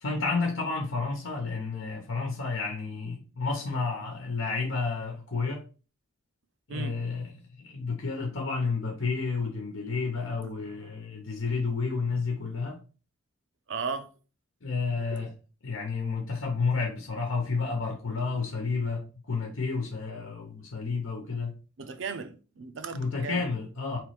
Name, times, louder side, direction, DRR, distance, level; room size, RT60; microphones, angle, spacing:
voice 1, 0.0-5.6 6.7-7.3 7.6-12.8 14.6-15.3 15.6-21.5 22.9-24.0, left 4 dB, 75° left, 1.0 m, -31 dB
voice 2, 13.7-14.1 15.1-15.2 21.8-23.4, right 5 dB, 65° right, 0.6 m, -36 dB
3.3 x 3.2 x 4.8 m
head